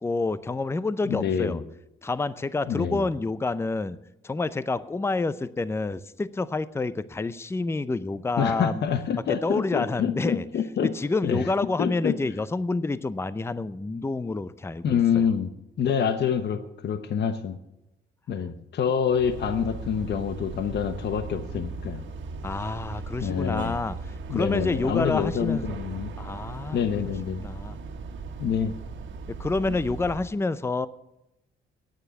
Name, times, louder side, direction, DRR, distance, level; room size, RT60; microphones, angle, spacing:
voice 1, 0.0-1.6 2.0-4.0 4.2-8.8 9.3-10.4 10.8-15.3 22.4-24.0 24.3-25.7 26.2-26.8 27.4-27.8 29.3-30.9, left 3 dB, 10° left, 16 dB, 0.6 m, -28 dB
voice 2, 1.0-1.6 2.7-3.0 8.4-10.9 11.2-11.5 11.8-12.2 14.8-15.5 15.8-17.6 18.3-22.0 23.2-23.8 24.3-26.1 26.7-27.4 28.4-28.7, left 7 dB, 60° left, 10 dB, 1.0 m, -26 dB
sound 1, 19.1-30.3, right 4 dB, 70° right, 1.6 m, -38 dB
9.7 x 9.1 x 9.3 m, 0.89 s
cardioid pair, 90°, 20 cm